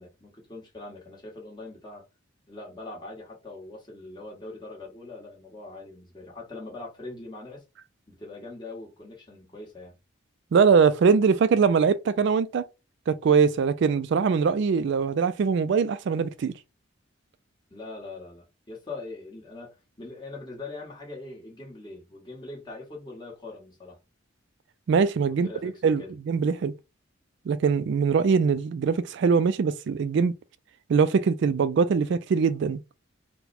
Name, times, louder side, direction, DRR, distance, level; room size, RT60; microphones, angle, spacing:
voice 1, 0.0-2.0 2.5-7.6 8.1-9.9 17.7-24.0 25.3-26.1, left 2 dB, 20° left, 1.4 m, -42 dB
voice 2, 10.5-12.6 13.1-16.5 24.9-26.7 27.5-30.3 30.9-32.8, right 5 dB, 60° right, 0.3 m, -22 dB
4.0 x 2.2 x 4.1 m
head